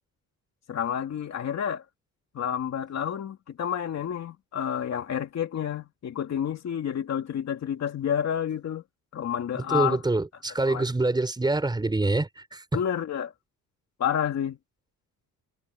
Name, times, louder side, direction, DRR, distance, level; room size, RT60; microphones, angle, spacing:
voice 1, 0.7-1.8 2.3-8.8 9.1-10.0 10.7-10.9 12.7-13.3 14.0-14.6, left 9 dB, 45° left, 2.7 m, -29 dB
voice 2, 9.5-12.6, right 2 dB, 10° right, 3.7 m, -26 dB
cardioid pair, 160°, 36 cm